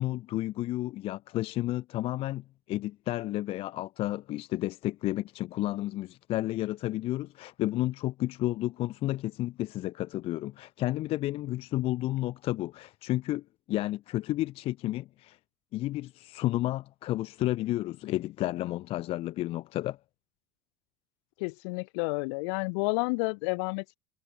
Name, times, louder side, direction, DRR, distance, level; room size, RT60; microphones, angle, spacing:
voice 1, 0.0-15.4 15.7-20.0, left 16 dB, 30° left, 0.5 m, -31 dB
voice 2, 21.4-24.0, left 33 dB, 50° left, 1.0 m, -30 dB
figure-of-eight pair, 80°, 19 cm